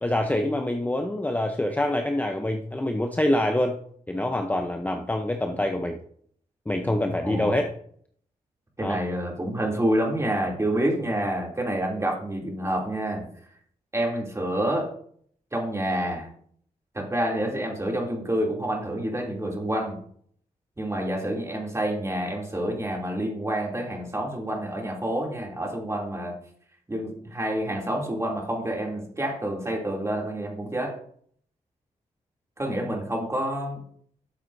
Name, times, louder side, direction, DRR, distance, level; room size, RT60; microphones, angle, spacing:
voice 1, 0.0-3.8 4.1-6.0 6.7-7.7 8.8-9.0, left 1 dB, 10° left, 4 dB, 0.8 m, -25 dB
voice 2, 7.2-7.6 8.8-13.3 13.9-14.9 15.5-16.3 16.9-20.0 20.8-26.3 26.9-31.0 32.6-33.8, right 1 dB, 20° right, -1 dB, 3.0 m, -28 dB
12.5 x 7.3 x 2.7 m, 0.62 s
cardioid pair, 65°, 14 cm